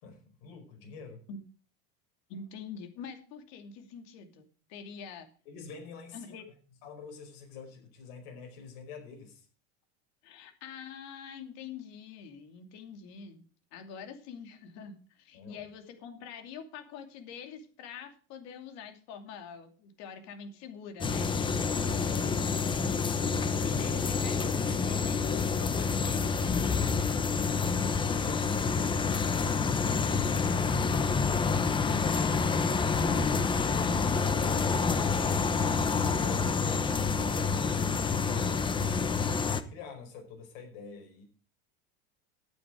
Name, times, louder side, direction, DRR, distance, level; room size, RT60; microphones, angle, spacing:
voice 1, 0.0-1.2 5.4-6.3 6.8-9.5 15.3-15.6 21.7-23.1 27.6-34.4 35.3-36.8 37.1-38.8 39.2-41.2, left 4 dB, 80° left, 5.1 m, -47 dB
voice 2, 2.3-5.3 6.1-6.5 10.2-21.3 23.6-26.9, left 6 dB, 60° left, 2.6 m, -45 dB
sound 1, 21.0-39.6, left 5 dB, 15° left, 0.8 m, -28 dB
sound 2, 32.1-37.6, right 2 dB, 5° right, 2.4 m, -47 dB
12.0 x 9.4 x 4.9 m
cardioid pair, 145°, 30 cm